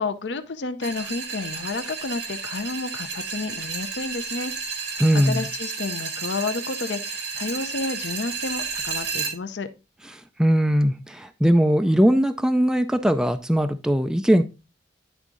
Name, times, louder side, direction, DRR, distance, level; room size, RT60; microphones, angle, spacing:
voice 1, 0.0-4.5 5.3-9.7, left 3 dB, 70° left, 0.6 m, -30 dB
sound 1, 0.8-9.3, right 5 dB, 65° right, 2.0 m, -32 dB
voice 2, 5.0-5.5 10.4-14.4, equal, 5° right, 0.4 m, -20 dB
10.0 x 3.6 x 3.7 m
head